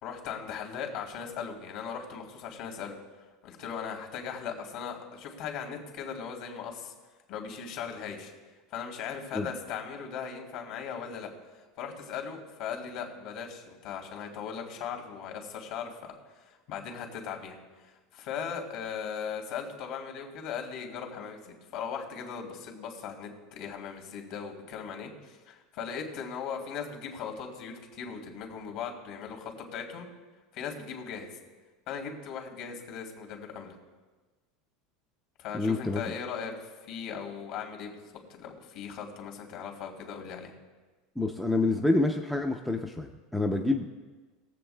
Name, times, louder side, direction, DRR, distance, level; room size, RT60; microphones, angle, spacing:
voice 1, 0.0-3.0 3.4-6.9 7.3-8.3 8.7-11.3 11.8-30.1 30.5-31.3 31.9-33.8 35.4-38.0 38.3-40.5, left 7 dB, 55° left, 3 dB, 2.7 m, -38 dB
voice 2, 35.5-36.0 41.2-43.9, left 2 dB, ahead, 2 dB, 0.5 m, -27 dB
22.5 x 7.9 x 2.2 m, 1.3 s
supercardioid pair, 160°, 0 cm